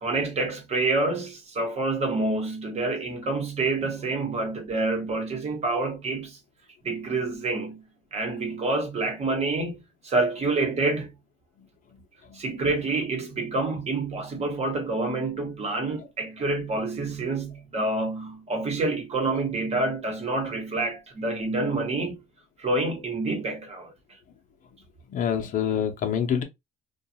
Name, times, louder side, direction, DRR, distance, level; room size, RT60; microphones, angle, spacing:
voice 1, 0.0-6.4 6.8-11.1 12.3-22.2 22.6-23.9, right 2 dB, 40° right, 1.0 m, -27 dB
voice 2, 25.1-26.4, left 8 dB, 55° left, 0.7 m, -26 dB
2.4 x 2.3 x 2.7 m
cardioid pair, 110°, 17 cm